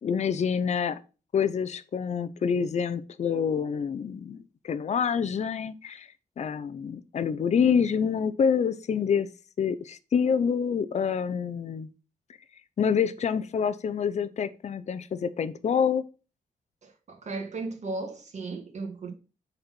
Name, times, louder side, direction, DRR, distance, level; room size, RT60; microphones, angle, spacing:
voice 1, 0.0-1.0 1.3-6.1 6.4-9.3 9.6-11.9 12.8-16.0, left 7 dB, 50° left, 0.6 m, -27 dB
voice 2, 16.8-19.1, right 3 dB, 50° right, 1.9 m, -36 dB
6.7 x 4.2 x 6.0 m
wide cardioid pair, 115°, 15 cm